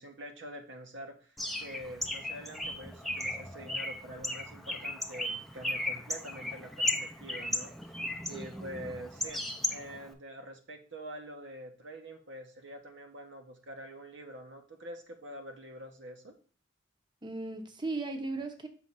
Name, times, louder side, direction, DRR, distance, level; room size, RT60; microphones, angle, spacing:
voice 1, 0.0-8.0 8.2-9.4 9.7-16.3, right 1 dB, 70° right, 4 dB, 1.1 m, -46 dB
Bird, 1.4-10.1, left 1 dB, ahead, 0.6 m, -36 dB
voice 2, 8.3-8.9 17.2-18.7, right 3 dB, 25° right, 6 dB, 0.9 m, -37 dB
6.2 x 3.2 x 5.5 m, 0.40 s
head